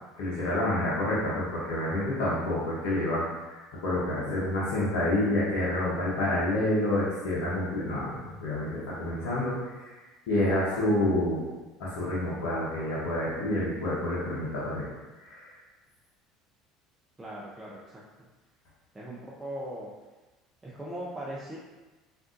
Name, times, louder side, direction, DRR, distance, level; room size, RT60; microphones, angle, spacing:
voice 1, 0.2-9.9 10.3-11.5 11.8-14.9 15.2-15.5, left 1 dB, 75° left, -8 dB, 0.9 m, -28 dB
voice 2, 17.2-18.0 18.9-19.9 20.6-21.6, right 1 dB, 15° right, -6 dB, 0.6 m, -39 dB
3.5 x 2.6 x 2.5 m, 1.2 s
hypercardioid pair, 75°, 0 cm